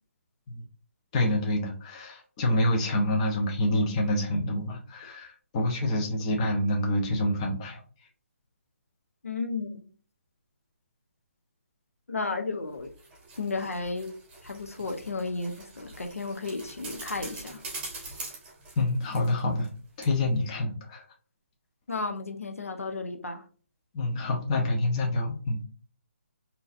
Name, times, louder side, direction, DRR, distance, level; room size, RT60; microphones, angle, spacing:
voice 1, 1.1-7.8 18.8-19.7 20.0-21.0 23.9-25.7, left 1 dB, 30° left, 0.9 m, -27 dB
voice 2, 9.2-9.8 12.1-12.9 13.4-14.1 14.4-17.6 21.9-23.4, left 3 dB, 90° left, 0.7 m, -33 dB
sound 1, 12.7-19.7 20.0-20.1, right 2 dB, 15° right, 1.1 m, -44 dB
3.8 x 2.8 x 2.5 m
figure-of-eight pair, 155°, 8 cm